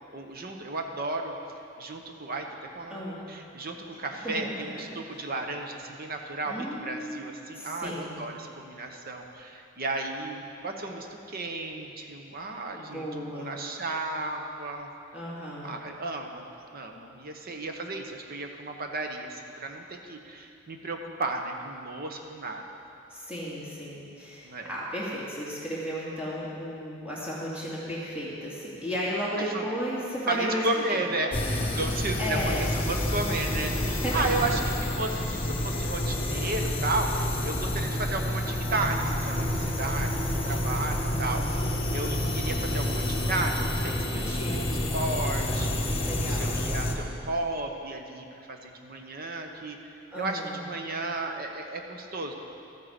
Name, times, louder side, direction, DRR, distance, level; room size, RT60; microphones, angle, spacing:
voice 1, 0.1-1.3 1.8-2.5 2.7-3.0 3.3-13.1 13.3-14.9 15.6-16.5 16.7-22.7 24.4-24.8 29.5-29.7 30.3-31.3 31.6-34.6 35.0-44.2 44.5-52.3, right 2 dB, 45° right, 3 dB, 1.0 m, -34 dB
voice 2, 2.9-3.2 4.2-4.5 5.1-5.2 6.4-8.3 12.7-13.6 15.1-15.8 23.1-31.0 32.2-32.7 33.7-34.5 41.5-41.9 44.2-44.9 46.0-46.4 50.1-50.6, equal, 5° right, -7 dB, 2.2 m, -34 dB
sound 1, 31.3-46.9, left 1 dB, 25° left, 1.1 m, -29 dB
13.5 x 9.0 x 5.2 m, 2.6 s
head